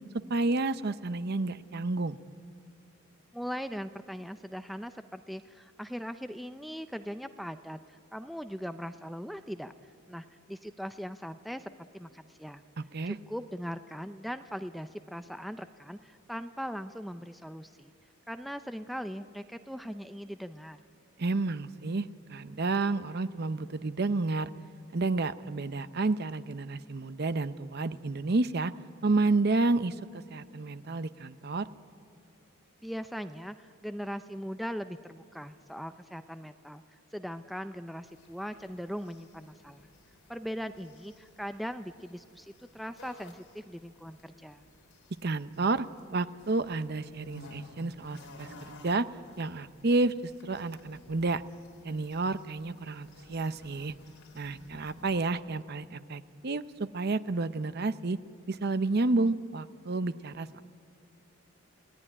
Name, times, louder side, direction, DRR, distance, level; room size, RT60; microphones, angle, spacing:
voice 1, 0.3-2.2 12.8-13.2 21.2-24.5 24.9-28.7 29.0-31.7 45.2-45.9 46.1-48.5 48.8-49.1 49.4-51.4 51.8-53.9 54.4-58.2 58.5-60.6, right 3 dB, 50° right, 12 dB, 0.6 m, -30 dB
voice 2, 3.3-9.7 10.1-12.6 13.0-17.9 18.3-20.8 32.8-36.8 37.1-39.9 40.3-44.6, equal, ahead, 9 dB, 0.5 m, -40 dB
sound 1, 38.0-55.2, left 1 dB, 75° left, 3.7 m, -54 dB
28.0 x 18.0 x 9.9 m, 2.5 s
head